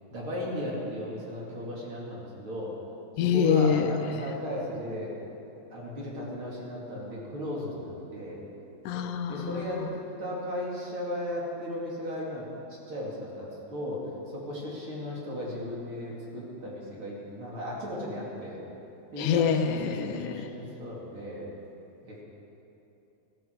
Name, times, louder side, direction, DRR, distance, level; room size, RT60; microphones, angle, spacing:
voice 1, 0.1-2.7 3.3-5.1 5.7-8.4 9.3-12.4 12.9-18.6 19.1-21.5 22.0-22.2, left 1 dB, 45° right, -5 dB, 3.4 m, -36 dB
voice 2, 3.2-3.9 8.9-9.5 9.8-9.9 19.2-20.5, left 7 dB, 85° left, 8 dB, 2.2 m, -25 dB
20.0 x 14.0 x 4.7 m, 2.9 s
omnidirectional pair, 3.5 m